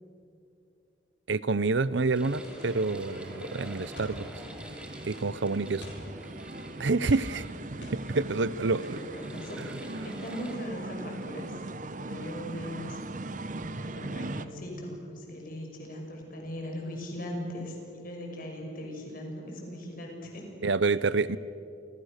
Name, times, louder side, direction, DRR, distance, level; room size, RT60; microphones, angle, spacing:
voice 1, 1.3-4.3 5.0-5.9 6.8-7.4 7.7-9.0 20.6-21.4, right 3 dB, 75° right, 17 dB, 0.7 m, -28 dB
sound 1, 2.1-10.6, equal, 5° right, 2.6 m, -47 dB
sound 2, 2.3-14.5, right 2 dB, 40° right, 0.8 m, -40 dB
sound 3, 2.4-3.1 3.9-4.5 5.1-5.2 5.8-6.1 7.0-8.3 8.7-9.1, left 1 dB, 80° left, 7.2 m, -49 dB
voice 2, 8.9-13.0 13.6-20.5 21.1-21.2, equal, 50° left, 1 dB, 6.2 m, -40 dB
30.0 x 26.0 x 6.6 m, 2.8 s
head